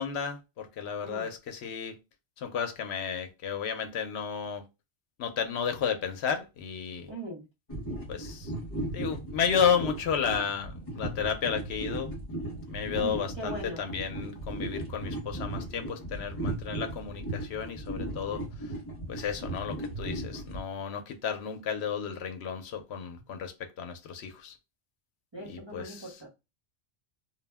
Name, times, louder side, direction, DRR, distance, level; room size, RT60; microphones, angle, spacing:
voice 1, 0.0-1.9 2.4-4.6 5.2-7.1 8.1-8.5 8.9-12.1 12.7-18.4 19.1-24.5 25.7-26.0, left 7 dB, 80° left, 0.8 m, -32 dB
voice 2, 1.0-1.3 7.1-7.5 12.9-13.8 25.3-26.3, right 1 dB, 30° right, 0.7 m, -39 dB
sound 1, 7.7-20.6, right 1 dB, 35° left, 0.9 m, -37 dB
2.3 x 2.0 x 3.3 m
omnidirectional pair, 1.1 m